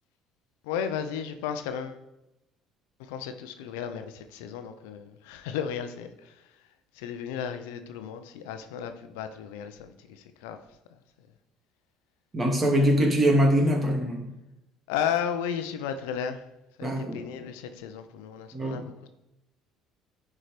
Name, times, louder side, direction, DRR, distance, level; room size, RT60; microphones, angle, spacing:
voice 1, 0.6-2.0 3.0-6.3 7.0-10.6 14.9-16.4 16.8-19.1, left 8 dB, 90° left, 9 dB, 0.8 m, -34 dB
voice 2, 12.3-14.3 16.8-17.3 18.5-18.8, equal, 30° right, 1 dB, 2.6 m, -23 dB
10.0 x 4.8 x 5.1 m, 0.90 s
supercardioid pair, 85°, 0 cm